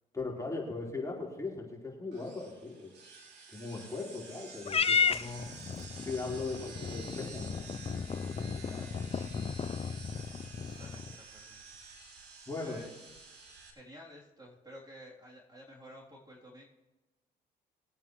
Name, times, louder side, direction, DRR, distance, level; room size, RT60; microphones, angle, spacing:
voice 1, 0.1-2.9 3.5-5.5 6.0-7.8 8.1-8.9 12.5-12.8, left 3 dB, 15° left, -3 dB, 4.4 m, -39 dB
sound 1, 2.1-13.7, right 4 dB, 65° right, 3.2 m, -50 dB
Purr / Meow, 4.7-11.2, left 6 dB, 30° left, 0.6 m, -34 dB
voice 2, 8.6-9.1 9.7-10.2 10.8-11.6 12.6-12.9 13.7-16.6, equal, 20° right, -4 dB, 3.6 m, -52 dB
22.5 x 8.7 x 3.3 m, 1.1 s
supercardioid pair, 65°, 19 cm